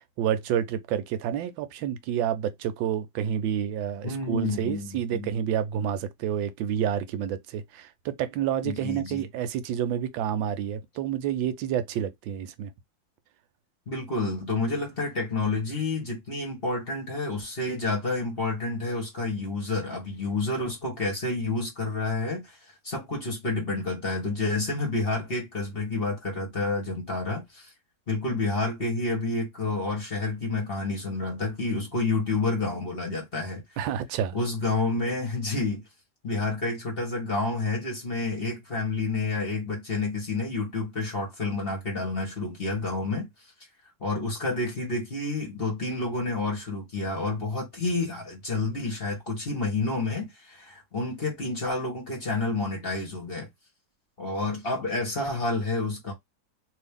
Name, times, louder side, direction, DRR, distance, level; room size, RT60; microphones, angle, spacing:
voice 1, 0.0-12.7 33.8-34.3, right 9 dB, 85° right, 1.3 m, -29 dB
voice 2, 4.0-5.3 8.6-9.2 13.9-27.7 28.1-33.6 34.3-35.8 36.2-43.3 44.0-53.5 54.2-56.1, left 3 dB, 35° left, 1.2 m, -29 dB
3.0 x 2.7 x 3.4 m
omnidirectional pair, 2.1 m